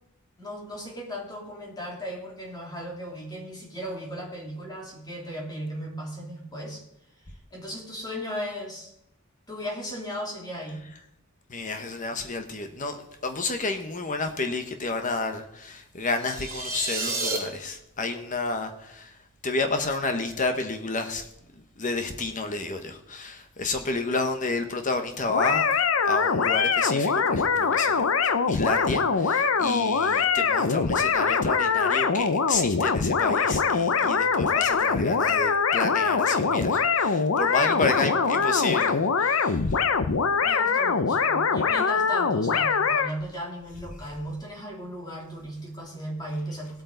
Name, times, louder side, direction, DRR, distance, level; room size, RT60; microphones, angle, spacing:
voice 1, 0.4-6.8 7.5-8.9 9.5-10.8 37.6-38.5 40.4-46.8, equal, 20° left, 3.2 m, -36 dB
voice 2, 11.5-19.2 19.4-21.3 21.8-25.8 26.0-39.6, left 3 dB, 40° left, 1.1 m, -30 dB
sound 1, 16.2-17.4, right 2 dB, 15° right, 4.0 m, -30 dB
sound 2, 25.3-43.1, left 5 dB, 70° left, 0.7 m, -23 dB
18.5 x 8.6 x 4.0 m
head